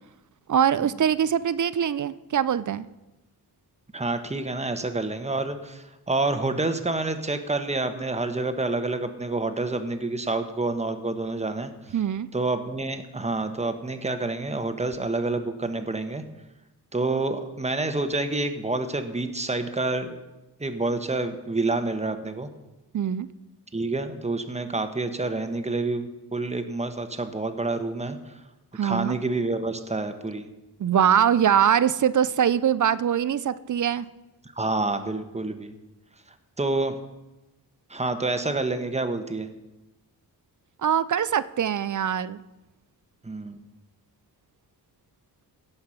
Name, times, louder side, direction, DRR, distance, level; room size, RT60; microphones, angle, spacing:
voice 1, 0.5-2.9 11.9-12.3 22.9-23.3 28.7-29.2 30.8-34.1 40.8-42.4, right 9 dB, 50° right, 17 dB, 0.5 m, -23 dB
voice 2, 3.9-11.7 12.3-16.2 16.9-20.2 20.6-22.5 23.7-28.3 28.8-30.4 34.6-35.7 36.6-37.0 37.9-39.5 43.2-43.6, right 2 dB, 15° right, 8 dB, 1.2 m, -28 dB
16.5 x 5.8 x 5.8 m, 1.0 s
cardioid pair, 65°, 41 cm